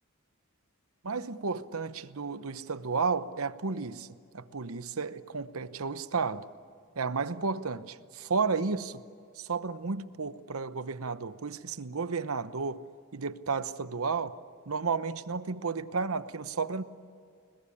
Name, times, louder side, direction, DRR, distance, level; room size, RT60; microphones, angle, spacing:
voice 1, 1.0-4.1 4.3-6.5 7.0-9.0 9.4-14.3 14.7-16.8, right 4 dB, 70° right, 0.9 m, -32 dB
30.0 x 20.5 x 8.6 m
head